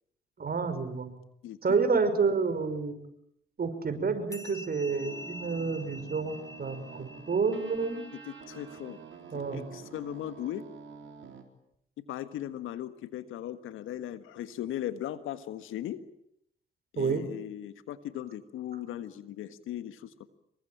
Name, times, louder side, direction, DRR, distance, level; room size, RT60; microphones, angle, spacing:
voice 1, 0.4-1.1 1.6-3.0 3.6-8.0 9.3-9.6 17.0-17.2, right 5 dB, 45° right, 9 dB, 5.8 m, -29 dB
voice 2, 1.4-1.8 8.2-9.0 9.3-10.6 12.1-16.0 16.9-20.3, left 12 dB, 70° left, 12 dB, 1.6 m, -38 dB
sound 1, 4.3-9.2, left 2 dB, 15° left, 5.2 m, -47 dB
sound 2, 4.9-11.4, right 6 dB, 65° right, 4.0 m, -48 dB
27.0 x 23.0 x 9.0 m, 0.75 s
hypercardioid pair, 45°, 21 cm